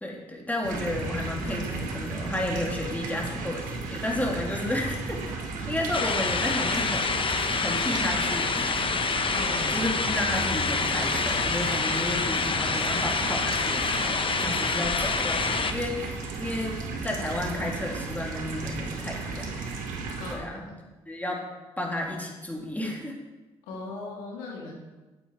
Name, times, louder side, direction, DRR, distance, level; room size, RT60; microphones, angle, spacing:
voice 1, 0.0-5.4 5.7-8.8 9.7-19.5 20.3-20.7 21.1-21.4 21.8-23.2, left 1 dB, 10° left, -1 dB, 2.8 m, -32 dB
sound 1, 0.6-20.3, right 3 dB, 80° right, 1.3 m, -34 dB
sound 2, 5.9-15.7, left 4 dB, 40° left, 1.0 m, -27 dB
voice 2, 9.3-9.8 20.2-20.5 23.7-24.7, left 3 dB, 85° left, -2 dB, 1.8 m, -37 dB
9.4 x 8.0 x 4.7 m, 1.1 s
hypercardioid pair, 45°, 13 cm